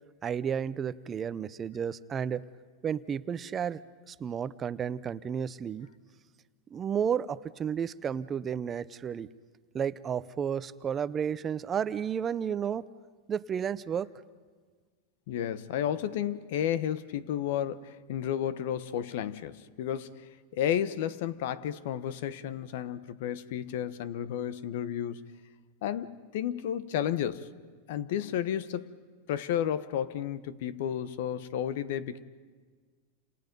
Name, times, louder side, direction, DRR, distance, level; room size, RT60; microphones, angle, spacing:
voice 1, 0.2-2.4 2.8-5.9 6.7-9.3 9.7-12.9 13.3-14.1, right 8 dB, 25° right, 0.6 m, -32 dB
voice 2, 15.3-20.3 20.5-25.2 25.8-27.5 27.9-28.9 29.3-32.2, left 10 dB, 65° left, 1.1 m, -32 dB
29.5 x 27.5 x 5.4 m
supercardioid pair, 135°, 0 cm